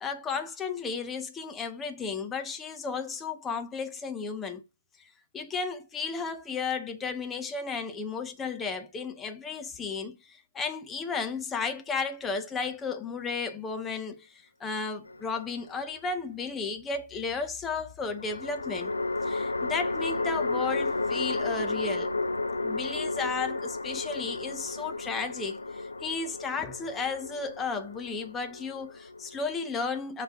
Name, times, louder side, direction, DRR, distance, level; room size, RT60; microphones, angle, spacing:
voice 1, 0.0-4.6 5.0-18.9 19.2-22.1 22.6-30.2, left 5 dB, 10° left, 0.6 m, -34 dB
sound 1, 15.1-15.9 18.2-29.5, left 3 dB, 75° left, 1.0 m, -33 dB
6.8 x 4.0 x 3.8 m
figure-of-eight pair, 150°, 0 cm